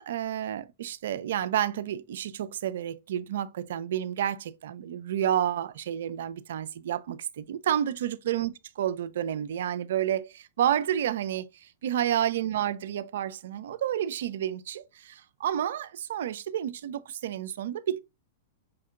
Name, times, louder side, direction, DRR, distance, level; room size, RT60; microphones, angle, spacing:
voice 1, 0.0-18.0, right 10 dB, 65° right, 0.3 m, -30 dB
5.1 x 2.7 x 2.3 m
hypercardioid pair, 105°, 0 cm